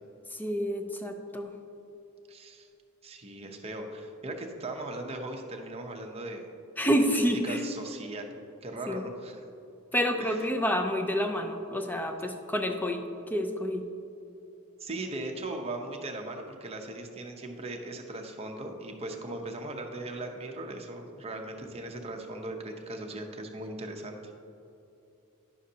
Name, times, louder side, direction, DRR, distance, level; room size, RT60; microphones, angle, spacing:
voice 1, 0.3-1.5 6.8-7.6 8.9-9.1 9.9-13.8, equal, 10° left, 5 dB, 0.5 m, -28 dB
voice 2, 2.3-2.7 3.0-6.5 7.4-8.3 8.6-9.4 10.2-10.4 14.8-24.2, right 2 dB, 30° right, 2 dB, 0.7 m, -38 dB
10.0 x 6.4 x 2.8 m, 2.8 s
head